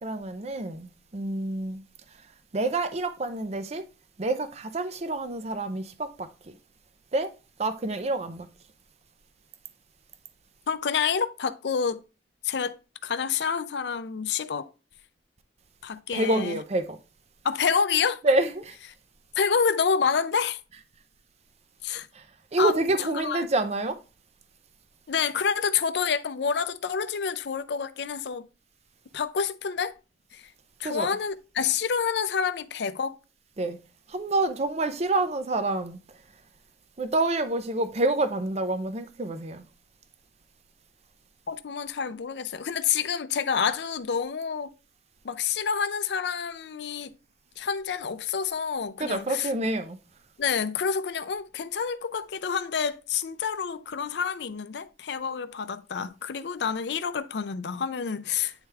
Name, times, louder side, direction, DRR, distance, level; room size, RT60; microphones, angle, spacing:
voice 1, 0.0-1.8 2.5-3.8 4.2-6.5 7.1-7.3 7.6-8.5 16.1-17.0 18.2-18.8 22.1-22.2 22.5-24.0 30.8-31.1 33.6-33.8 34.1-36.0 37.0-39.6 49.0-50.0, right 2 dB, 40° right, 0.6 m, -27 dB
voice 2, 10.7-12.0 12.4-12.8 13.0-14.7 15.8-16.6 17.4-18.2 19.4-20.6 21.8-22.1 22.6-22.7 23.2-23.5 25.1-28.5 29.1-29.9 30.3-30.4 30.8-33.2 41.5-44.7 45.2-47.1 47.6-49.5 50.4-58.5, left 6 dB, 70° left, 0.5 m, -28 dB
8.9 x 3.4 x 3.3 m
head